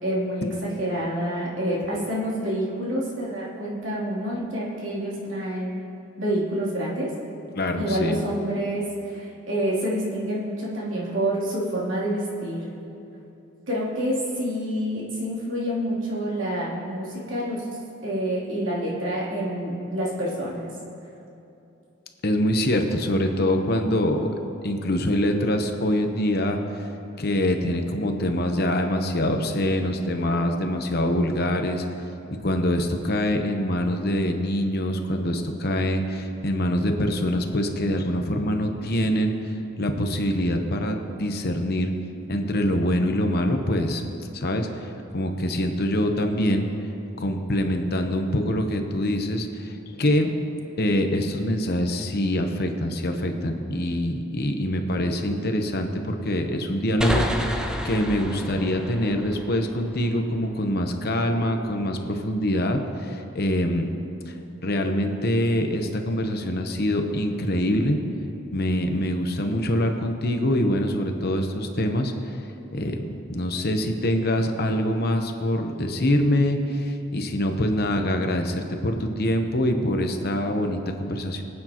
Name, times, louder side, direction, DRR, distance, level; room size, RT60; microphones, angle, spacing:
voice 1, 0.0-5.8 6.2-7.1 7.8-12.7 13.7-17.6 18.0-20.7, equal, 70° right, -6 dB, 3.1 m, -27 dB
voice 2, 7.5-8.2 22.2-24.3 24.6-26.9 27.2-31.8 32.4-39.5 39.8-41.9 42.3-44.0 44.3-46.7 47.2-50.3 50.8-63.9 64.3-64.4 64.6-68.0 68.5-72.4 72.7-81.4, left 1 dB, 50° left, 4 dB, 0.9 m, -24 dB
sound 1, 57.0-60.5, equal, 5° right, 0.6 m, -30 dB
23.5 x 8.7 x 3.0 m, 2.8 s
head